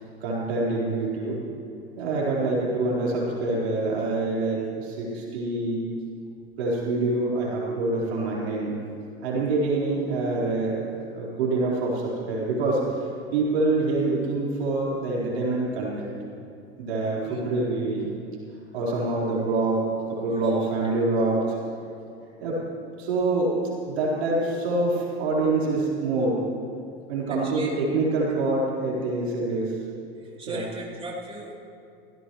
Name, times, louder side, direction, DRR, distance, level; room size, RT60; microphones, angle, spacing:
voice 1, 0.2-1.4 2.0-5.9 6.6-8.7 9.2-12.8 13.3-16.1 16.8-18.1 18.7-21.4 22.4-22.6 23.0-23.6 23.8-26.4 27.1-29.7 30.5-30.6, right 2 dB, 80° right, -5 dB, 4.5 m, -26 dB
voice 2, 20.3-20.7 21.0-22.0 27.3-27.9 30.2-31.5, right 2 dB, 20° right, -6 dB, 3.8 m, -38 dB
22.5 x 16.0 x 3.2 m, 2.6 s
hypercardioid pair, 90°, 31 cm